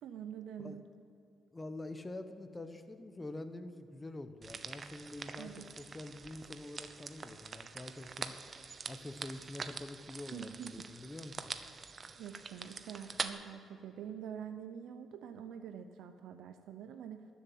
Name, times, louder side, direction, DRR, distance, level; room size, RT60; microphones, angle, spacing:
voice 1, 0.0-0.8 5.4-5.7 10.3-10.9 12.2-17.3, right 8 dB, 80° right, 8 dB, 0.6 m, -46 dB
voice 2, 1.5-8.4 8.9-11.5, left 2 dB, 20° left, 8 dB, 1.0 m, -46 dB
sound 1, 4.4-13.3, right 5 dB, 40° right, 0.8 m, -45 dB
12.5 x 7.3 x 9.2 m, 2.7 s
cardioid pair, 90°, 0 cm